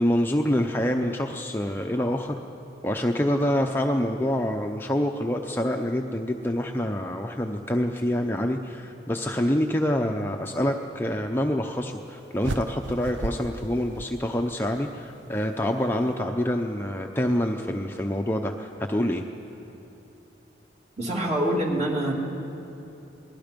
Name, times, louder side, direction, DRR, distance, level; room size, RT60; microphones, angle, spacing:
voice 1, 0.0-2.4 2.8-19.2, equal, 10° left, 2 dB, 0.7 m, -26 dB
sound 1, 12.4-14.8, right 2 dB, 80° right, 0.7 m, -35 dB
voice 2, 21.0-22.1, right 1 dB, 35° right, -1 dB, 2.7 m, -25 dB
27.5 x 20.5 x 5.3 m, 3.0 s
head